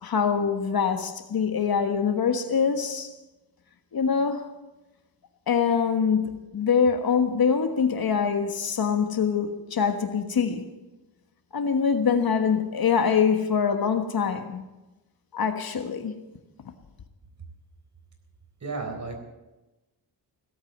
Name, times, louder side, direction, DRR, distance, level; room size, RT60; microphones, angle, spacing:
voice 1, 0.0-3.1 3.9-4.5 5.5-10.6 11.5-14.6 15.3-16.1, left 6 dB, 55° left, 1.4 m, -24 dB
voice 2, 18.6-19.2, right 3 dB, 40° right, 4.0 m, -33 dB
17.5 x 8.7 x 8.0 m
cardioid pair, 95°, 44 cm